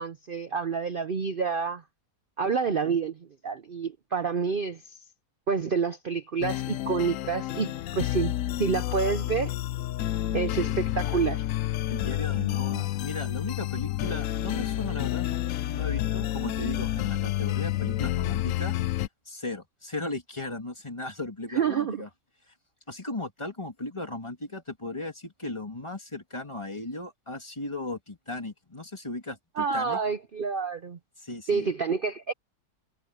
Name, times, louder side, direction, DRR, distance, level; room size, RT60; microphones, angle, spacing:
voice 1, 0.0-1.8 2.4-3.2 3.4-4.8 5.5-9.5 10.3-11.4 21.5-22.0 29.6-31.0 31.5-32.3, right 5 dB, 65° right, 0.5 m, -28 dB
sound 1, 6.4-19.1, left 14 dB, 70° left, 0.8 m, -29 dB
voice 2, 11.9-18.8 19.3-22.1 22.5-22.6 22.9-30.0 31.2-31.7, left 2 dB, 15° left, 2.4 m, -36 dB
omnidirectional pair, 1.8 m